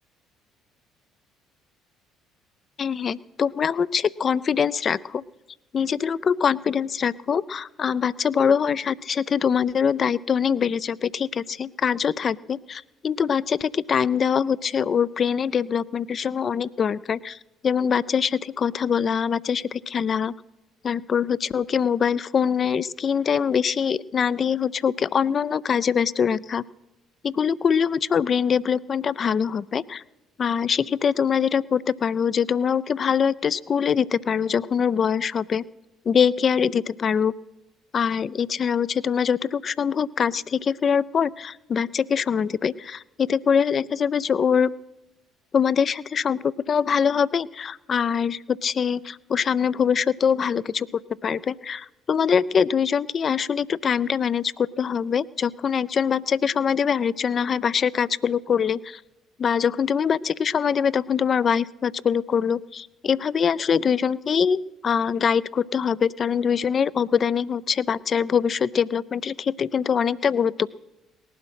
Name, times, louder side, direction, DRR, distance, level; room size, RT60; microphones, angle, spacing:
voice 1, 2.8-5.2 5.7-17.4 17.6-20.3 20.8-26.6 27.2-30.0 30.4-35.6 36.1-37.3 37.9-44.7 45.5-59.0 59.4-70.7, left 7 dB, 45° left, 19 dB, 0.4 m, -23 dB
19.0 x 11.5 x 5.8 m, 0.96 s
hypercardioid pair, 55°, 0 cm